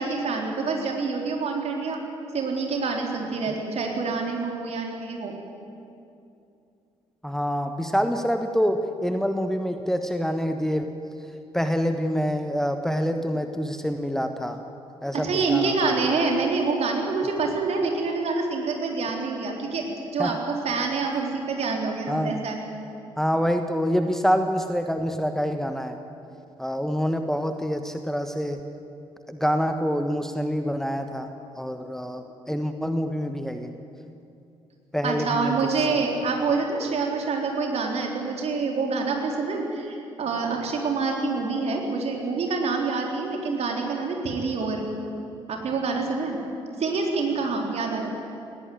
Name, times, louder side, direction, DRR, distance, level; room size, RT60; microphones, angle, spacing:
voice 1, 0.0-2.0 2.3-5.3 15.1-19.9 20.1-22.6 35.0-44.9 45.5-46.4 46.8-48.1, right 4 dB, 50° right, 1 dB, 3.9 m, -26 dB
voice 2, 7.2-10.9 11.5-14.6 15.0-16.0 20.2-20.3 22.1-22.4 23.2-26.0 26.6-28.6 29.3-31.3 31.6-33.7 34.9-35.5, equal, 5° left, 7 dB, 1.3 m, -26 dB
19.5 x 17.0 x 9.5 m, 2.7 s
figure-of-eight pair, 45°, 14 cm